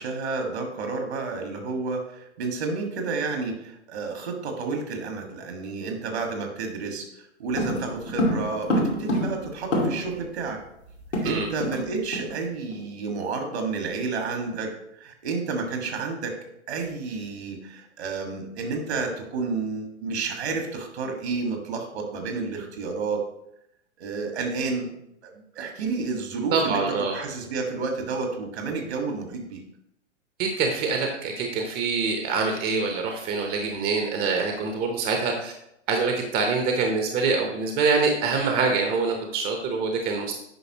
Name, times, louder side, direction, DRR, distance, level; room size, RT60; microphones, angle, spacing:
voice 1, 0.0-7.1 7.4-10.6 11.2-14.7 15.0-16.3 16.7-23.2 24.0-24.9 25.2-29.6, right 4 dB, 60° right, 3 dB, 1.9 m, -30 dB
sound 1, 7.6-10.2 10.5-10.6 10.8-11.9 12.1-12.3 12.7-12.9, equal, 80° left, 2.4 m, -27 dB
voice 2, 26.5-27.2 30.4-35.5 35.9-40.3, right 4 dB, 25° right, 3 dB, 1.0 m, -25 dB
9.0 x 5.6 x 3.0 m, 0.78 s
figure-of-eight pair, 105°, 36 cm